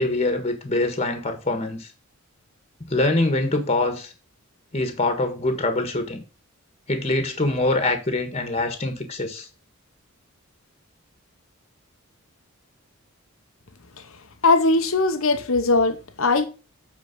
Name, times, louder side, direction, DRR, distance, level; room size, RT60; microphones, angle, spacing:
voice 1, 0.0-1.9 2.9-4.1 4.7-6.2 6.9-9.5, left 2 dB, 30° left, 1.5 m, -24 dB
voice 2, 14.4-16.5, left 3 dB, 65° left, 0.9 m, -20 dB
8.6 x 4.5 x 5.3 m
head